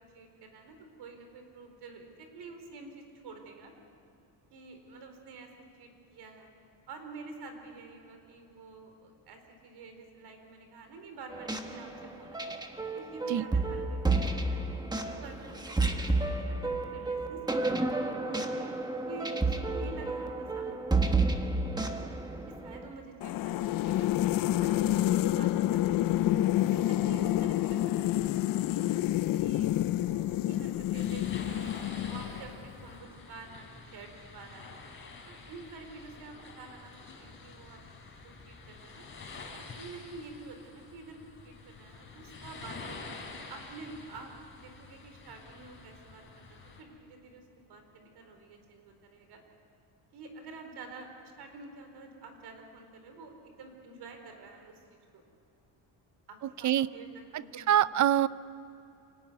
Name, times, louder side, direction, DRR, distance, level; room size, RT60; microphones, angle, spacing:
voice 1, 0.0-3.7 4.5-5.5 5.8-6.5 6.9-12.5 12.9-14.7 15.0-21.3 22.6-25.8 26.4-28.2 28.7-29.0 29.4-34.7 35.3-36.9 37.2-37.8 38.2-39.0 39.6-43.1 43.5-46.2 46.6-49.4 50.1-54.7 55.1-55.2 56.3-58.0, right 3 dB, 60° right, 5 dB, 4.3 m, -48 dB
sound 1, 11.3-22.9, right 3 dB, 10° right, 1.3 m, -31 dB
sound 2, 23.2-32.5, left 13 dB, 50° left, 0.5 m, -28 dB
sound 3, 30.9-46.8, left 3 dB, 25° left, 4.3 m, -47 dB
voice 2, 57.3-58.3, right 11 dB, 40° right, 17 dB, 0.6 m, -25 dB
26.0 x 18.0 x 9.5 m, 2.6 s
cardioid pair, 150°, 44 cm